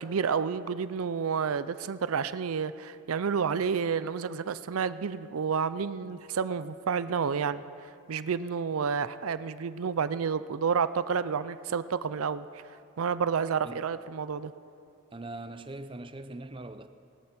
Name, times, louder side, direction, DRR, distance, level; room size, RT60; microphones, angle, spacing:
voice 1, 0.0-7.6 8.1-12.5 13.0-14.5, right 6 dB, 75° right, 14 dB, 0.5 m, -30 dB
voice 2, 15.1-16.9, right 2 dB, 25° right, 10 dB, 0.5 m, -41 dB
18.0 x 12.0 x 5.9 m, 2.6 s
head